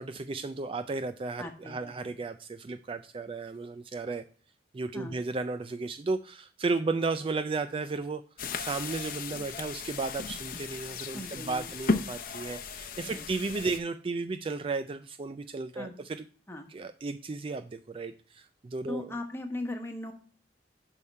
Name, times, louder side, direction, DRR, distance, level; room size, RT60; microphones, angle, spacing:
voice 1, 0.0-4.2 4.7-8.2 8.6-16.2 16.7-19.1, right 3 dB, 30° right, 11 dB, 0.3 m, -34 dB
voice 2, 1.4-2.2 4.9-5.2 11.1-11.7 13.0-13.2 15.7-15.9 16.5-16.7 18.9-20.1, left 1 dB, 15° left, 4 dB, 1.2 m, -39 dB
sound 1, 8.4-13.8, left 4 dB, 50° left, 0.8 m, -35 dB
11.0 x 3.6 x 5.4 m, 0.42 s
head